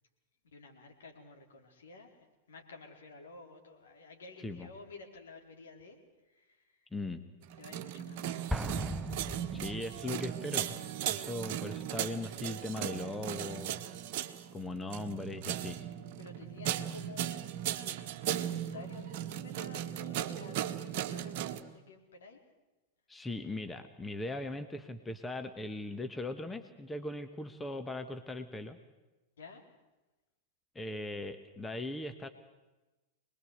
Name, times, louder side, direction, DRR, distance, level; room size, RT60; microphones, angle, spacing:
voice 1, 0.5-2.2 2.5-6.0 6.3-6.9 7.6-8.9 16.2-17.9 18.3-22.4 29.4-29.6, left 3 dB, 65° left, 2 dB, 4.2 m, -52 dB
voice 2, 6.9-7.2 9.5-10.8 11.1-13.8 14.5-15.9 23.1-28.8 30.7-32.3, left 2 dB, 10° left, 8 dB, 1.3 m, -39 dB
sound 1, 7.4-21.6, right 11 dB, 45° right, 1.4 m, -37 dB
Explosion, 8.5-10.3, right 1 dB, 5° right, 0.9 m, -37 dB
25.0 x 20.5 x 8.1 m, 1.1 s
figure-of-eight pair, 90°, 0 cm